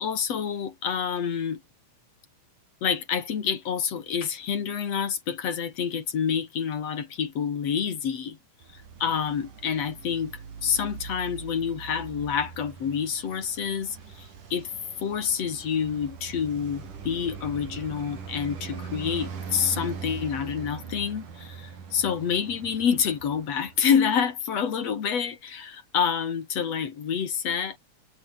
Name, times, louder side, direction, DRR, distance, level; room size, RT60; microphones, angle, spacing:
voice 1, 0.0-1.6 2.8-8.4 9.0-10.3 10.6-14.7 15.0-27.8, left 7 dB, 55° left, 3.3 m, -28 dB
Traffic noise roadway noise, 8.6-24.1, right 6 dB, 90° right, 5.3 m, -41 dB
omnidirectional pair, 3.5 m